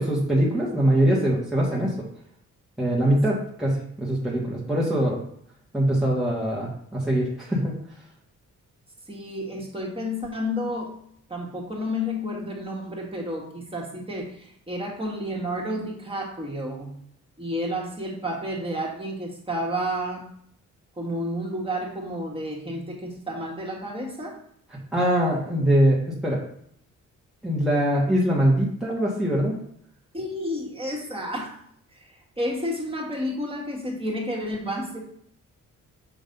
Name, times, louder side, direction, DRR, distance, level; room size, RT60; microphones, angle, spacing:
voice 1, 0.0-1.9 2.8-5.2 5.7-7.7 24.9-26.4 27.4-29.5, right 1 dB, ahead, -5 dB, 1.6 m, -22 dB
voice 2, 9.1-10.9 11.3-17.0 17.4-20.3 21.0-24.4 30.1-31.6 31.9-35.0, equal, 15° right, -3 dB, 1.9 m, -31 dB
6.2 x 3.2 x 5.3 m, 0.68 s
cardioid pair, 85°, 31 cm